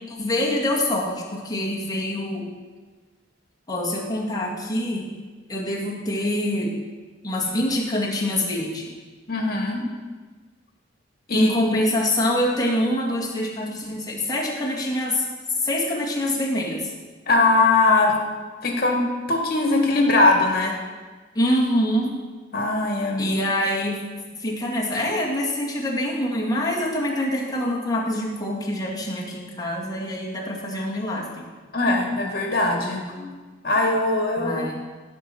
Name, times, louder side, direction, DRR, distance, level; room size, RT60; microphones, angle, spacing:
voice 1, 0.0-2.5 3.7-5.1 5.5-6.8 7.2-8.9 11.3-15.3 15.6-16.9 21.3-22.2 23.2-24.0 24.4-31.5 34.4-34.8, left 1 dB, 20° left, -4 dB, 1.9 m, -25 dB
voice 2, 9.3-9.8 11.3-11.5 17.3-18.1 18.6-19.0 19.3-20.8 22.5-23.4 31.7-33.3 33.6-34.6, left 2 dB, 55° left, 1 dB, 1.9 m, -21 dB
16.0 x 6.2 x 4.4 m, 1.4 s
head